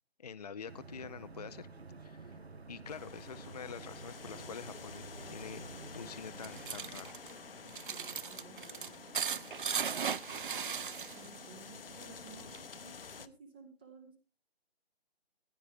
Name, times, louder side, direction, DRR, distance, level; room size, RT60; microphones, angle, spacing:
voice 1, 0.2-1.7 2.0-2.3 2.7-5.7 5.9-7.1, left 6 dB, 40° left, 14 dB, 0.6 m, -46 dB
sound 1, 0.7-7.2, right 3 dB, 75° right, 1.8 m, -50 dB
sound 2, 2.9-13.3, left 5 dB, 60° left, 1.1 m, -50 dB
sound 3, 6.2-11.4 11.7-12.7, right 7 dB, 55° right, 0.5 m, -38 dB
voice 2, 7.6-8.9 9.2-9.4 10.5-14.2, right 4 dB, 10° right, 6 dB, 0.7 m, -56 dB
15.0 x 9.7 x 3.4 m, 0.29 s
figure-of-eight pair, 155°, 32 cm